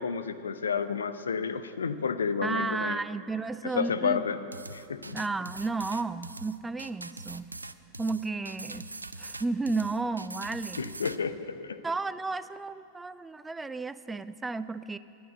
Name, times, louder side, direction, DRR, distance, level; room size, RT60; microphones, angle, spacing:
voice 1, 0.0-3.0 3.6-4.4 4.7-5.2 10.8-11.8, left 6 dB, 70° left, 11 dB, 0.5 m, -31 dB
voice 2, 2.4-4.2 5.1-7.5 8.0-8.8 9.2-10.8 11.8-15.0, right 3 dB, 10° right, 15 dB, 0.3 m, -33 dB
sound 1, 4.5-11.2, right 2 dB, 80° right, 0.4 m, -42 dB
11.0 x 9.4 x 8.0 m, 2.6 s
figure-of-eight pair, 90°, 0 cm